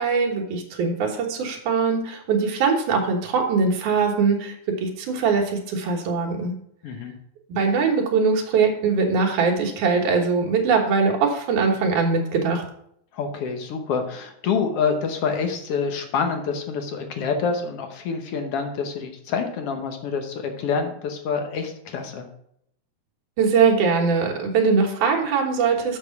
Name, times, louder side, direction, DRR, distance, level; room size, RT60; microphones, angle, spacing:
voice 1, 0.0-6.5 7.5-12.6 23.4-26.0, right 5 dB, 90° right, 1 dB, 2.9 m, -21 dB
voice 2, 13.1-22.3, left 5 dB, 65° left, 5 dB, 1.6 m, -27 dB
6.8 x 6.6 x 5.8 m, 0.71 s
omnidirectional pair, 3.4 m